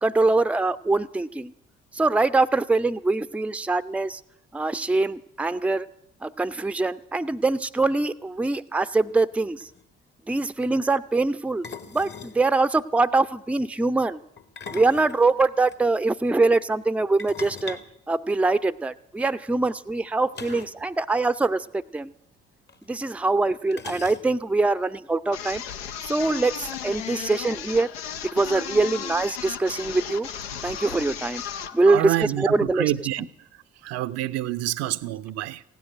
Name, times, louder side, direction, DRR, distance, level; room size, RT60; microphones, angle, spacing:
voice 1, 0.0-1.5 1.9-4.2 4.5-5.9 6.2-9.6 10.3-14.2 14.7-17.8 18.1-22.1 22.9-25.6 26.1-27.9 28.3-30.3 30.6-31.4 31.7-32.0 32.4-32.9, right 3 dB, 5° right, 0.5 m, -23 dB
sound 1, 9.3-9.4 9.6-9.8 11.6-12.4 14.4-15.8 17.2-18.8 20.3-20.8 21.1-21.2 21.5-21.7 22.7-22.8 23.7-24.6, left 5 dB, 35° left, 1.1 m, -40 dB
sound 2, 25.3-31.8, left 8 dB, 80° left, 0.7 m, -35 dB
voice 2, 31.9-33.3 33.8-35.6, right 14 dB, 60° right, 0.6 m, -27 dB
16.0 x 9.3 x 9.0 m
figure-of-eight pair, 45°, 30 cm